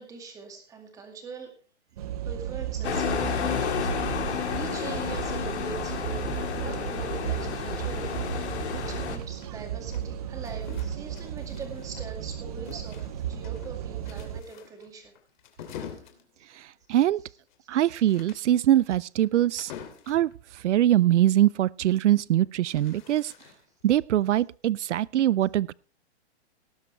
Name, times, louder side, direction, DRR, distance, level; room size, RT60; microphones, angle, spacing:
voice 1, 0.0-1.5 2.2-6.2 6.5-15.1 15.8-16.0 16.4-16.5, right 4 dB, 10° right, 2.1 m, -42 dB
sound 1, 2.0-14.4, right 10 dB, 35° right, 0.8 m, -34 dB
sound 2, 2.8-9.2, left 7 dB, 70° left, 3.5 m, -31 dB
sound 3, 9.2-12.3 12.7-20.3 22.2-23.8, left 8 dB, 40° left, 2.8 m, -47 dB
voice 2, 16.6-17.2 17.7-19.7 20.1-23.3 23.8-25.7, right 12 dB, 85° right, 0.5 m, -23 dB
18.5 x 10.0 x 3.3 m
hypercardioid pair, 165°, 34 cm